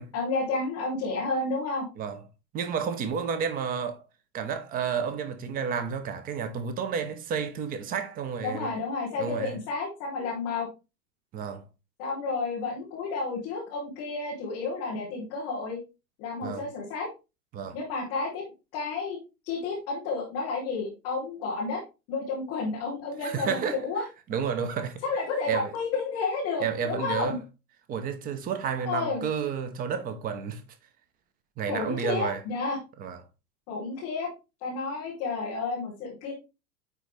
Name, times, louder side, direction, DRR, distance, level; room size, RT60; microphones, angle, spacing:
voice 1, 0.0-1.8 8.4-10.7 12.0-15.8 16.2-17.1 17.7-18.4 18.7-19.2 19.5-21.8 22.1-24.0 25.0-27.4 28.9-29.2 31.7-32.8 33.7-34.3 34.6-36.3, left 4 dB, 5° left, 0.3 m, -31 dB
voice 2, 2.5-4.0 4.3-8.7 9.2-9.6 11.3-11.6 16.4-16.7 17.5-17.8 23.2-23.8 24.3-25.0 25.5-25.7 26.6-27.4 27.9-30.6 31.6-32.4 33.0-33.2, right 7 dB, 20° right, 0.7 m, -31 dB
9.2 x 4.0 x 3.2 m
figure-of-eight pair, 100°, 49 cm